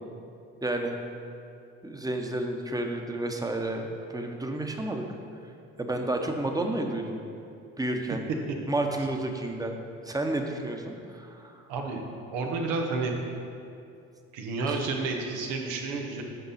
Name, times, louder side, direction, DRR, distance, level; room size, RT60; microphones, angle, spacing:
voice 1, 0.6-1.0 1.8-5.0 5.8-7.2 7.8-8.2 8.7-9.8 10.0-11.6 14.7-14.8, right 1 dB, 10° right, 3 dB, 1.0 m, -31 dB
voice 2, 11.7-12.0 12.3-13.2 14.3-16.2, right 3 dB, 85° right, 2 dB, 1.1 m, -30 dB
9.3 x 5.9 x 4.2 m, 2.5 s
supercardioid pair, 70°, 31 cm